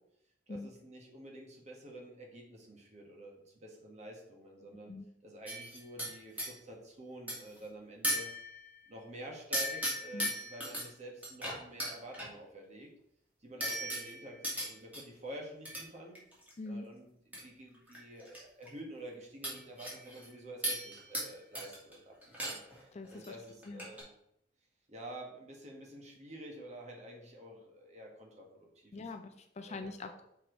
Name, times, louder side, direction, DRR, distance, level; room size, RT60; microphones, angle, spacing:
voice 1, 0.5-4.9 5.2-8.3 8.9-12.9 13.4-16.2 16.7-24.1 24.9-29.0 29.6-29.9, right 1 dB, 40° right, 0 dB, 1.6 m, -49 dB
sound 1, 5.5-6.5 7.3-7.6 8.0-8.8 9.5-10.8 11.2-12.3 13.6-15.0 15.7-15.8 16.1-16.5 17.3-17.4 17.7-18.4 18.7-18.8 19.4-20.3 20.6-21.3 21.5-21.9 22.2-22.8 23.0-23.3 23.6-24.0, equal, 10° right, 2.1 m, -37 dB
voice 2, 16.6-16.9 22.9-23.4 23.7-23.9 28.9-30.2, left 3 dB, 35° left, 7 dB, 0.4 m, -43 dB
6.0 x 4.9 x 3.9 m, 0.75 s
head